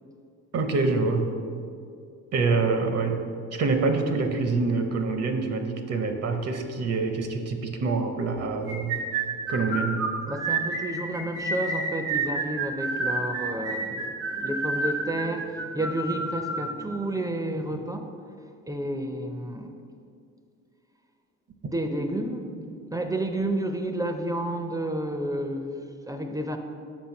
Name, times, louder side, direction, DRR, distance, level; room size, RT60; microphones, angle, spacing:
voice 1, 0.5-1.3 2.3-3.2 3.5-9.0 9.5-10.0, right 4 dB, 55° right, 6 dB, 0.7 m, -26 dB
sound 1, 8.7-16.7, right 3 dB, 85° right, 1.4 m, -29 dB
voice 2, 10.3-18.0 18.4-19.7 21.6-26.6, right 1 dB, 10° right, 5 dB, 0.5 m, -31 dB
5.8 x 4.3 x 5.7 m, 2.3 s
cardioid pair, 90°, 30 cm